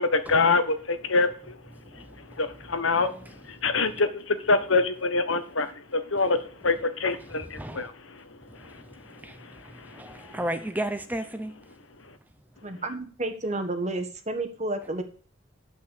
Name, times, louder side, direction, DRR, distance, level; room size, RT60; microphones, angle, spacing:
voice 1, 0.0-1.6 1.9-3.1 3.5-8.2 8.6-8.8 9.1-10.4, left 3 dB, 80° left, 1.3 m, -26 dB
voice 2, 1.9-2.4 2.9-3.3 3.6-3.7 7.3-7.9 8.5-11.5, right 1 dB, 10° right, 0.8 m, -35 dB
voice 3, 12.6-15.0, right 2 dB, 35° right, 1.5 m, -31 dB
11.5 x 5.8 x 8.5 m
head